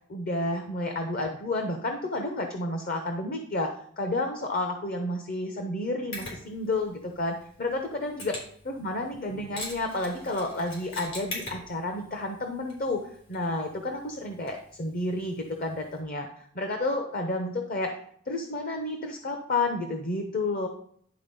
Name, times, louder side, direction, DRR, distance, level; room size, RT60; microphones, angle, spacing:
voice 1, 0.1-8.4 8.6-13.0 13.3-16.3 16.5-18.0 18.3-20.7, left 2 dB, 45° left, 4 dB, 0.8 m, -31 dB
Mechanisms, 6.1-16.0, left 1 dB, 80° left, 3.8 m, -44 dB
10.5 x 3.9 x 5.4 m, 0.63 s
head